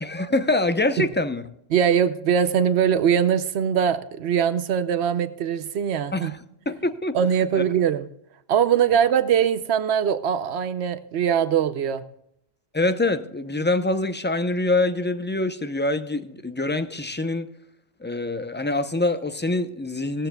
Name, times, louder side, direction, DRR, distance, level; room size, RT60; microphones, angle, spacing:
voice 1, 0.0-1.4 6.1-6.4 6.7-7.1 7.5-7.6 12.7-17.5 18.0-20.3, left 2 dB, 15° left, 0.6 m, -25 dB
voice 2, 1.7-6.3 7.1-8.0 8.5-12.0, right 8 dB, 85° right, 0.9 m, -22 dB
18.0 x 14.5 x 2.3 m
omnidirectional pair, 1.1 m